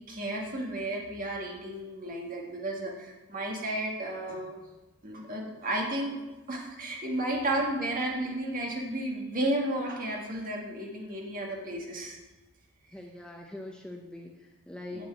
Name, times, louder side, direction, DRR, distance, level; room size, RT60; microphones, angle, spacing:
voice 1, 0.0-4.6 5.0-6.2 6.5-12.2 14.9-15.1, right 1 dB, 40° right, -1 dB, 1.7 m, -33 dB
voice 2, 12.9-15.1, left 1 dB, 5° left, 1 dB, 0.6 m, -43 dB
9.0 x 4.6 x 7.5 m, 1.1 s
head